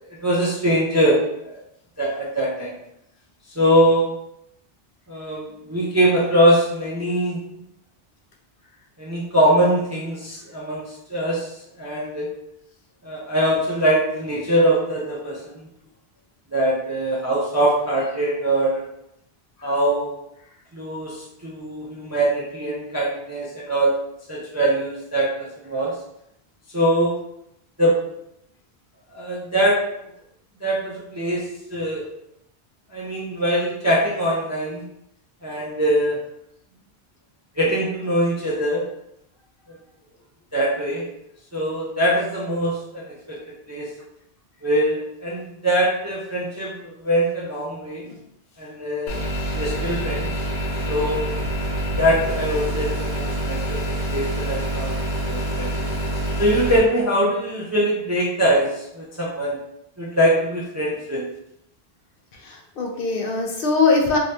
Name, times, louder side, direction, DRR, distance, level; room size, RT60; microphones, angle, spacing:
voice 1, 0.2-1.6 2.0-2.7 3.6-4.1 5.1-7.6 9.0-11.5 11.8-12.3 13.0-15.7 16.5-18.8 19.6-20.1 20.7-23.9 24.3-25.9 26.7-27.2 27.8-28.0 29.1-29.8 30.6-32.0 32.9-34.8 35.4-36.2 37.6-38.8 40.5-41.0 41.5-43.9 44.6-48.1 48.6-49.2 49.5-50.3 50.9-51.2 52.0-55.0 55.3-55.7 56.4-59.6 60.0-61.2, right 1 dB, 25° right, -6 dB, 0.4 m, -22 dB
sound 1, 49.1-56.8, right 1 dB, 85° left, 1.2 m, -26 dB
voice 2, 62.3-64.2, left 4 dB, 65° left, 1 dB, 0.7 m, -22 dB
2.7 x 2.5 x 3.2 m, 0.80 s
omnidirectional pair, 1.1 m